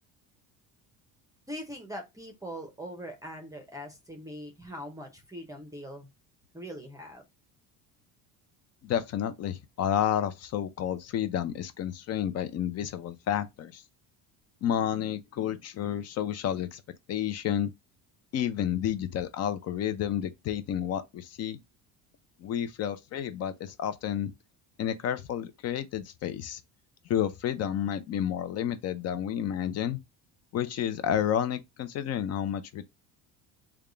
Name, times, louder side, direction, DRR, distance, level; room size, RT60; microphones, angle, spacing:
voice 1, 1.5-6.1 6.5-7.2, equal, 10° right, 0.6 m, -41 dB
voice 2, 8.8-13.8 14.6-16.8 17.1-17.7 18.3-21.6 22.4-24.3 24.8-26.6 27.1-30.0 30.5-32.8, left 10 dB, 40° left, 0.5 m, -30 dB
3.4 x 2.3 x 3.7 m
cardioid pair, 140°, 38 cm